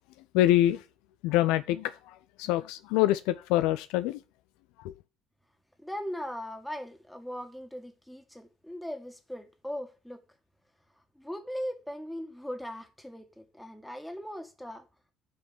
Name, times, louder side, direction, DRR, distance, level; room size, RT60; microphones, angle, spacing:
voice 1, 0.3-0.8 1.2-4.2, left 14 dB, 60° left, 0.4 m, -25 dB
voice 2, 5.8-10.2 11.2-14.9, equal, 5° left, 1.9 m, -39 dB
8.6 x 5.0 x 7.5 m
figure-of-eight pair, 55°, 0 cm